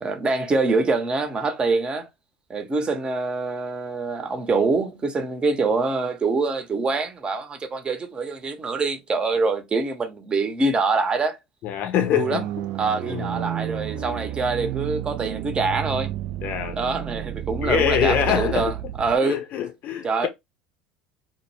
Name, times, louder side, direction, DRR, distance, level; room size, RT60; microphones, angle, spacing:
voice 1, 0.0-2.1 2.5-11.4 12.1-12.4 12.8-16.1 16.7-18.7 19.0-19.4 20.0-20.3, right 3 dB, 25° right, 0.7 m, -25 dB
voice 2, 11.6-12.4 13.1-13.5 14.0-14.2 16.4-16.8 17.6-18.7 19.2-20.3, left 10 dB, 50° left, 0.6 m, -24 dB
sound 1, 12.1-19.2, right 14 dB, 55° right, 0.4 m, -31 dB
2.1 x 2.0 x 3.1 m
hypercardioid pair, 75°, 4 cm